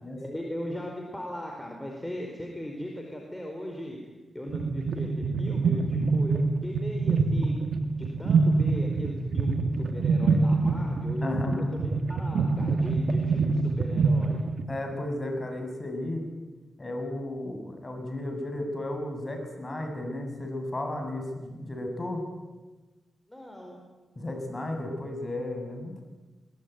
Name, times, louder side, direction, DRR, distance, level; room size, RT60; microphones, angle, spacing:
voice 1, 0.1-4.0 4.3-7.6 8.0-14.4 23.3-23.8, equal, 10° left, 1 dB, 4.7 m, -38 dB
sound 1, 4.5-14.6, right 4 dB, 75° right, 2.4 m, -25 dB
voice 2, 11.2-11.7 14.7-16.2 16.8-22.2 24.2-26.0, left 1 dB, 25° left, 3 dB, 7.7 m, -33 dB
23.0 x 21.0 x 9.5 m, 1.2 s
cardioid pair, 75°, 0 cm